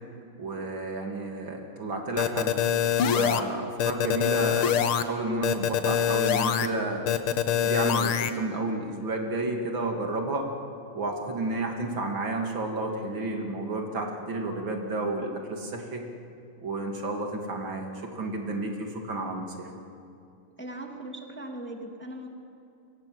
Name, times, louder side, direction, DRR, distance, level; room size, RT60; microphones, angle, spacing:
voice 1, 0.4-2.5 3.1-7.1 7.5-10.5 10.9-16.0 16.6-19.7, right 2 dB, 65° right, 2 dB, 3.3 m, -31 dB
sound 1, 2.2-3.4 3.8-5.0 5.4-6.7 7.1-8.3, left 9 dB, 80° left, 2.0 m, -24 dB
voice 2, 20.6-22.3, right 1 dB, 5° left, 2 dB, 2.1 m, -39 dB
30.0 x 25.0 x 7.9 m, 2.6 s
omnidirectional pair, 2.3 m